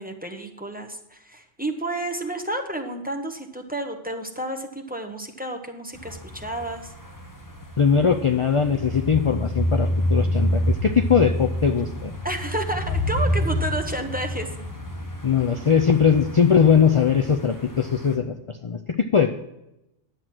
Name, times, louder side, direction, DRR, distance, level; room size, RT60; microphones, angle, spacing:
voice 1, 0.0-6.9 12.2-14.5, right 1 dB, 10° right, 4 dB, 0.9 m, -31 dB
sound 1, 5.9-18.2, equal, 15° left, 1.1 m, -28 dB
voice 2, 7.8-12.1 15.2-18.3 18.6-19.3, left 6 dB, 50° left, 6 dB, 0.4 m, -20 dB
10.5 x 7.8 x 6.1 m, 0.89 s
omnidirectional pair, 1.3 m